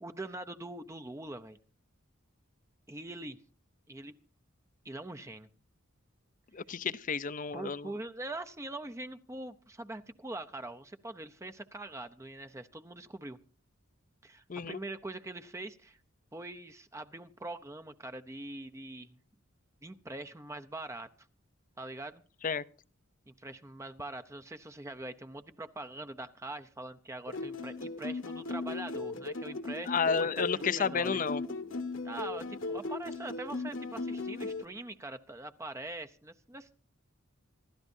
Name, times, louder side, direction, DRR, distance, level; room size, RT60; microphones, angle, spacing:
voice 1, 0.0-1.6 2.9-3.4 3.9-4.1 4.8-5.5 7.5-13.4 14.2-16.0 16.3-19.2 19.8-21.1 21.8-22.2 23.3-31.1 32.0-36.8, right 2 dB, 15° right, 0.6 m, -43 dB
voice 2, 6.5-7.9 14.5-14.8 22.4-22.6 29.9-31.4, left 6 dB, 40° left, 0.6 m, -31 dB
sound 1, 27.3-34.6, left 3 dB, 65° left, 1.5 m, -37 dB
26.5 x 13.0 x 2.7 m
head